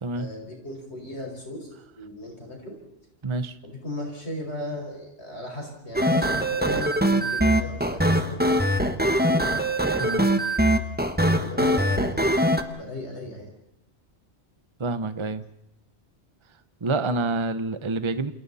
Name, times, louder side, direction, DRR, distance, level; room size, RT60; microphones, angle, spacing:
voice 1, 0.1-2.8 3.6-8.7 9.1-9.5 11.2-12.3 12.7-13.5, left 1 dB, 70° left, 0 dB, 5.6 m, -37 dB
voice 2, 3.2-3.6 10.0-10.3 14.8-15.4 16.8-18.3, right 3 dB, 30° right, 12 dB, 0.9 m, -27 dB
sound 1, 5.9-12.6, right 1 dB, 10° right, 1.4 m, -22 dB
28.5 x 27.0 x 4.2 m, 0.85 s
omnidirectional pair, 1.2 m